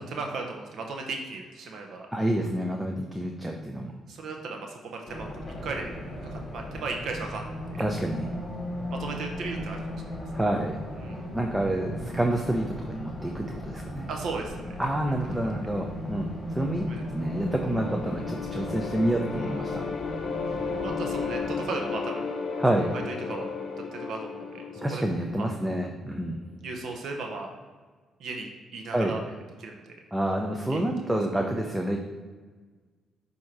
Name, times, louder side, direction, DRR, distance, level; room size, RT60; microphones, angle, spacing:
voice 1, 0.1-2.1 4.1-5.3 5.6-5.9 6.2-7.8 8.9-10.2 11.0-11.2 14.1-14.9 15.6-15.7 16.9-17.0 19.3-19.6 20.8-22.3 22.9-23.5 23.8-25.5 26.6-27.5 28.2-29.9 30.7-30.9, right 3 dB, 70° right, 2 dB, 0.8 m, -36 dB
voice 2, 2.1-3.9 7.8-8.3 10.3-10.8 11.3-14.1 14.8-19.9 22.6-22.9 24.8-26.4 28.9-29.2 30.1-32.0, right 1 dB, 10° right, 2 dB, 0.6 m, -28 dB
Race car auto racing, 5.1-21.7, equal, 30° left, 1.4 m, -37 dB
sound 1, 16.8-25.9, left 5 dB, 55° left, 0.6 m, -34 dB
7.4 x 2.8 x 4.6 m, 1.4 s
cardioid pair, 90°, 0 cm